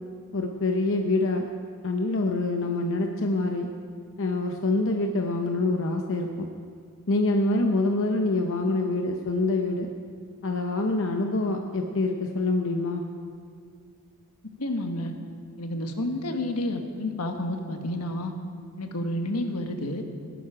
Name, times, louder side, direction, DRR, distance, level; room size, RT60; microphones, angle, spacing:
voice 1, 0.3-1.4 1.8-3.7 4.2-6.5 7.1-9.9 10.4-13.0, left 2 dB, 60° left, 4 dB, 0.7 m, -25 dB
voice 2, 14.6-15.1 15.6-18.3 18.8-20.0, left 1 dB, 85° left, 5 dB, 1.4 m, -30 dB
17.0 x 12.0 x 4.9 m, 2.2 s
head